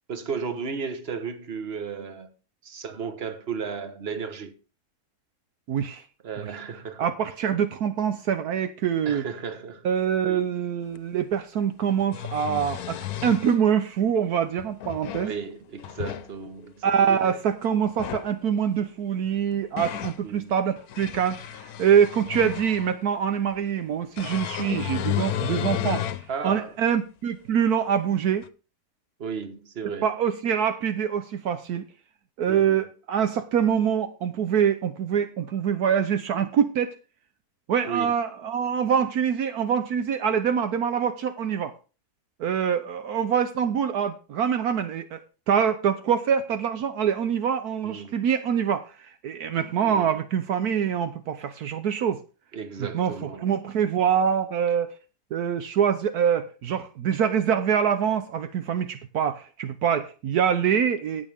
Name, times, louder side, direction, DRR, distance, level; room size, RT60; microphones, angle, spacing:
voice 1, 0.1-2.3 2.6-4.5 6.2-7.1 9.0-9.8 10.2-10.4 15.2-17.4 20.2-20.5 26.3-26.7 29.2-30.1 32.5-32.9 37.8-38.2 47.8-48.2 49.8-50.1 52.5-53.5, right 6 dB, 40° right, 1.4 m, -34 dB
voice 2, 5.7-6.0 6.4-6.5 7.0-9.2 9.8-15.3 16.8-26.0 26.4-28.4 30.0-31.9 32.4-36.9 37.7-41.7 42.4-45.2 45.5-52.2 52.9-55.0 55.3-61.3, right 8 dB, 75° right, 1.3 m, -25 dB
sound 1, 11.0-11.1 11.9-13.6 14.6-15.3 15.8-16.3 17.9-18.3 19.3-20.2 20.8-23.0 24.2-26.3 26.8-26.9 28.4-28.5, left 11 dB, 75° left, 1.2 m, -32 dB
18.0 x 6.5 x 3.5 m
omnidirectional pair, 1.7 m